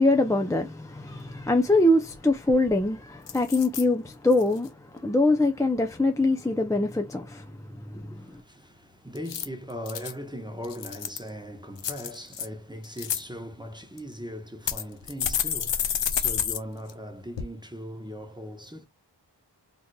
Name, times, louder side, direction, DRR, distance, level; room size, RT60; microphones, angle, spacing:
voice 1, 0.0-8.4, left 2 dB, 10° left, 0.4 m, -24 dB
sound 1, 2.1-2.2 2.5-2.8 3.3-3.8 4.3-4.7 9.1-10.1 10.6-11.3 11.8-12.5 12.8-13.2 14.0-14.1 14.7-16.6 16.9-17.0 17.4-17.5, left 8 dB, 85° left, 0.6 m, -30 dB
voice 2, 8.1-18.9, equal, 10° right, 0.8 m, -39 dB
3.7 x 2.8 x 2.2 m
wide cardioid pair, 75°, 42 cm